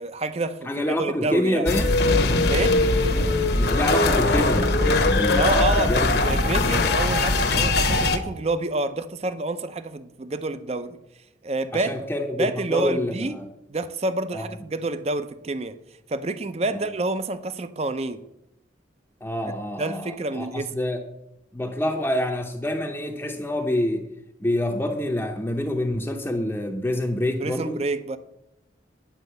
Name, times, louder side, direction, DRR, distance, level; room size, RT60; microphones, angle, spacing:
voice 1, 0.0-1.7 2.5-2.8 5.4-11.0 11.4-12.0 12.4-13.4 13.7-15.7 16.1-18.2 19.8-20.7 27.4-28.2, right 2 dB, 35° right, 0.5 m, -28 dB
voice 2, 0.6-1.9 3.5-6.7 7.4-7.7 11.7-13.5 14.3-14.5 16.7-16.8 19.2-21.0 21.5-24.1 24.4-27.8, left 1 dB, 10° left, 0.6 m, -27 dB
sound 1, 1.7-8.2, left 2 dB, 55° left, 1.0 m, -20 dB
10.0 x 5.2 x 7.9 m
head